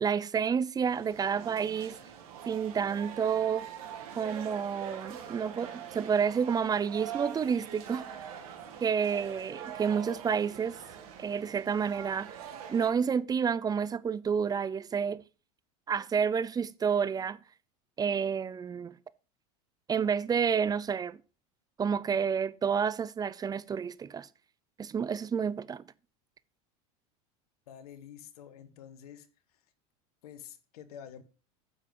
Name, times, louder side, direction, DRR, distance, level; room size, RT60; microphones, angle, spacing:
voice 1, 0.0-2.0 2.5-3.7 4.2-8.1 8.8-10.8 11.2-12.4 12.7-15.2 15.9-17.4 18.0-18.9 19.9-21.2 21.8-24.3 24.8-25.8, right 7 dB, 20° right, 0.5 m, -29 dB
sound 1, 0.9-12.9, right 9 dB, 75° right, 2.4 m, -44 dB
voice 2, 27.7-29.3 29.5-29.6 30.2-31.2, left 9 dB, 80° left, 1.4 m, -48 dB
9.9 x 7.2 x 3.8 m
hypercardioid pair, 105°, 19 cm